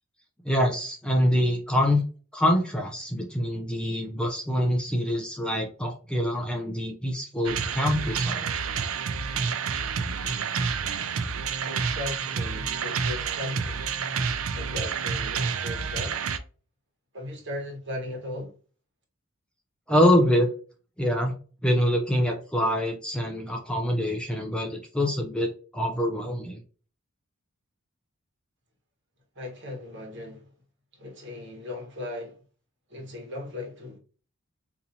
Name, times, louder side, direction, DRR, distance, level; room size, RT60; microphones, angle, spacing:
voice 1, 0.4-2.0 2.3-8.5 19.9-20.5 21.0-21.3 21.6-26.6, equal, 5° left, 0.5 m, -25 dB
sound 1, 7.4-16.4, right 6 dB, 80° right, 0.5 m, -29 dB
voice 2, 11.6-13.9 14.5-16.2 17.1-18.5 29.3-30.5 30.9-32.4 32.9-34.0, left 2 dB, 55° right, 1.3 m, -37 dB
4.0 x 2.9 x 2.7 m
head